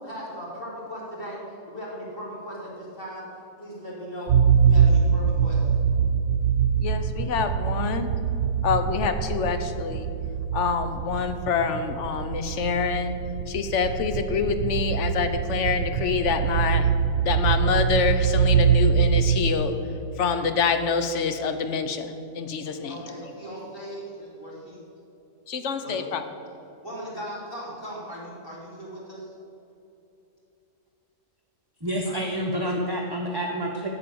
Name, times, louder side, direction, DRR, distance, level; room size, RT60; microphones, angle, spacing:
voice 1, 0.0-3.3 3.6-5.6 22.9-24.8 25.8-26.0 26.8-29.3 32.0-32.3, equal, 40° left, -6 dB, 3.2 m, -38 dB
sound 1, 4.3-19.9, right 7 dB, 75° right, 1.0 m, -23 dB
voice 2, 6.8-8.2 8.6-10.1 10.5-13.2 13.5-16.9 17.2-23.0 25.5-26.3, left 6 dB, 60° left, 9 dB, 1.0 m, -26 dB
voice 3, 31.8-33.9, equal, 20° right, -1 dB, 0.7 m, -28 dB
8.4 x 6.9 x 8.5 m, 2.8 s
omnidirectional pair, 1.5 m